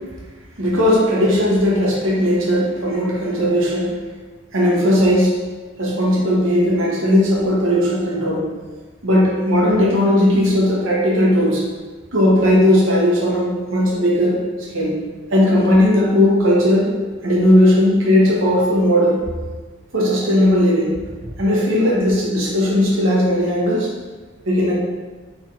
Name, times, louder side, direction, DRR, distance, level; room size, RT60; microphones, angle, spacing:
voice 1, 0.6-4.0 4.5-5.3 5.8-8.5 9.0-11.6 12.1-14.4 14.7-15.0 15.3-17.0 17.2-19.3 19.9-20.9 21.4-23.9 24.5-24.7, left 1 dB, 80° right, -3 dB, 1.0 m, -17 dB
4.1 x 3.3 x 2.5 m, 1.3 s
head